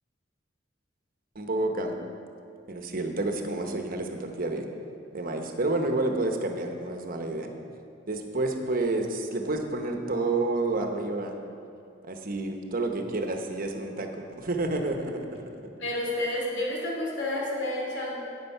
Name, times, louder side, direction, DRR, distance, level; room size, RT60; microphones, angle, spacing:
voice 1, 1.3-1.9 2.7-4.7 5.1-7.5 8.1-11.4 12.1-14.1 14.4-15.4, right 2 dB, 50° right, 4 dB, 1.0 m, -29 dB
voice 2, 15.8-18.2, left 1 dB, 75° left, -4 dB, 2.7 m, -30 dB
10.5 x 8.8 x 5.5 m, 2.6 s
head